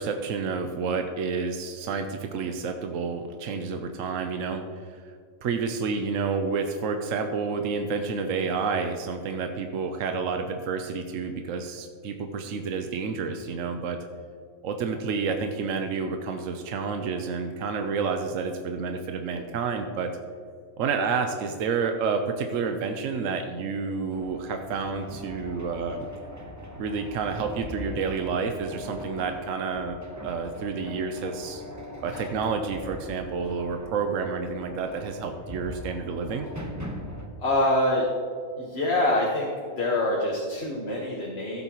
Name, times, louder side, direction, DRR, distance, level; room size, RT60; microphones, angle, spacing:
voice 1, 0.0-4.6 5.4-14.0 14.6-20.2 20.8-26.1 26.8-30.0 30.2-31.6 32.0-36.5, right 5 dB, 75° right, 5 dB, 1.1 m, -29 dB
sound 1, 24.1-37.3, equal, 15° right, 0.9 m, -41 dB
voice 2, 37.4-38.1 38.6-41.6, left 1 dB, 50° left, -2 dB, 1.6 m, -25 dB
15.0 x 8.1 x 3.0 m, 2.1 s
omnidirectional pair, 1.4 m